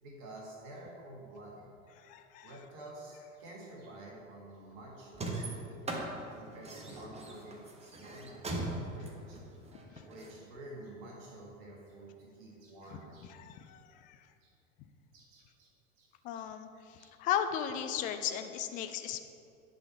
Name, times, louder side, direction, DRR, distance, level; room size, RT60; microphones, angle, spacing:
voice 1, 0.0-1.7 2.4-6.0 6.3-9.6 10.0-13.3 13.6-13.8 14.4-14.5 15.1-15.7 16.0-16.4 17.0-17.1 18.7-18.8, right 1 dB, 45° right, -2 dB, 1.7 m, -50 dB
voice 2, 2.1-2.5 13.4-13.8 16.2-16.7 17.2-19.2, left 10 dB, 20° left, 8 dB, 0.3 m, -35 dB
sound 1, 5.1-10.3, right 2 dB, 15° right, 1.1 m, -39 dB
10.5 x 4.2 x 5.9 m, 2.5 s
figure-of-eight pair, 85°, 40 cm